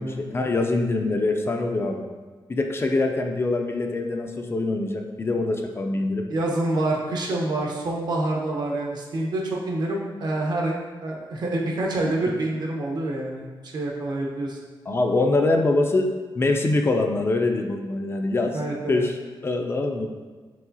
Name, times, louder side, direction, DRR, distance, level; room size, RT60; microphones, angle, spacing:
voice 1, 0.0-2.0 2.5-6.2 14.9-16.1 16.4-18.5 18.9-19.1 19.4-20.1, left 2 dB, 30° left, 3 dB, 0.3 m, -24 dB
voice 2, 6.3-14.6 18.5-19.1, right 2 dB, 55° right, -1 dB, 0.7 m, -27 dB
4.7 x 3.7 x 2.7 m, 1.4 s
wide cardioid pair, 125°, 8 cm